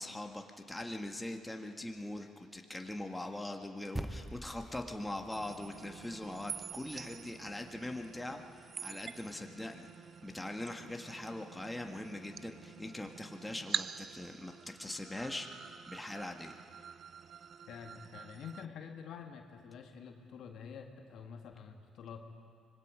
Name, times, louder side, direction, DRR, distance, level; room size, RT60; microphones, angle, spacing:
voice 1, 0.0-9.9 10.2-15.5 15.9-16.5, left 1 dB, 10° left, 3 dB, 1.9 m, -42 dB
sound 1, 4.0-8.5, right 1 dB, 10° right, 1.1 m, -47 dB
sound 2, 5.3-18.7, right 6 dB, 50° right, 0.5 m, -46 dB
voice 2, 17.7-22.2, left 7 dB, 65° left, 4 dB, 1.8 m, -48 dB
25.0 x 21.0 x 5.1 m, 2.4 s
hypercardioid pair, 55°, 0 cm